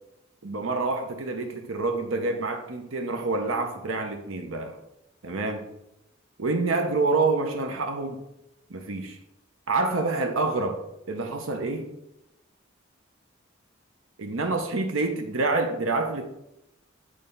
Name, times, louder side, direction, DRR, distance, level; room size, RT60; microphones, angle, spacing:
voice 1, 0.4-4.8 5.2-5.7 6.4-8.2 8.7-9.2 9.7-11.9 14.2-16.3, right 3 dB, 85° right, 5 dB, 0.8 m, -27 dB
8.7 x 3.3 x 5.4 m, 0.87 s
head